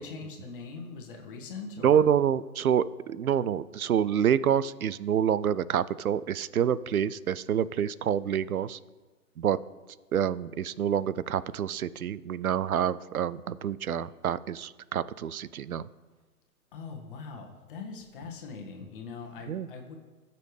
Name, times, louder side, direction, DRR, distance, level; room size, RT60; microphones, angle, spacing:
voice 1, 0.0-2.1 16.7-19.9, left 4 dB, 35° left, 2 dB, 1.5 m, -41 dB
voice 2, 1.8-8.8 9.4-9.6 10.1-15.9 19.5-19.7, right 9 dB, 65° right, 18 dB, 0.5 m, -27 dB
17.0 x 6.8 x 3.3 m, 1.3 s
figure-of-eight pair, 125°, 46 cm